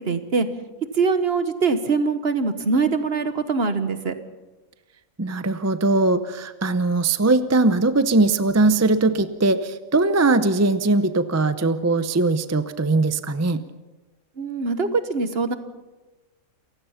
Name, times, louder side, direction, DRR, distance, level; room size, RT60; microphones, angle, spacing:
voice 1, 0.0-0.5 0.9-4.1 14.4-15.5, right 4 dB, 45° right, 10 dB, 1.4 m, -23 dB
voice 2, 5.2-13.6, right 2 dB, 20° right, 12 dB, 0.4 m, -20 dB
28.5 x 16.0 x 5.7 m, 1.1 s
omnidirectional pair, 1.5 m